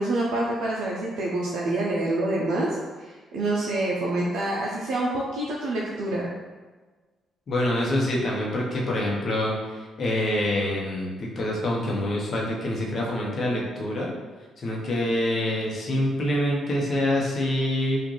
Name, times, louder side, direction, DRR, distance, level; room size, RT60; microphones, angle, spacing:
voice 1, 0.0-6.3, right 2 dB, 80° right, -4 dB, 0.5 m, -27 dB
voice 2, 7.5-14.1 14.6-18.0, left 1 dB, 50° left, -2 dB, 0.9 m, -26 dB
3.8 x 2.5 x 3.1 m, 1.3 s
cardioid pair, 90°, 0 cm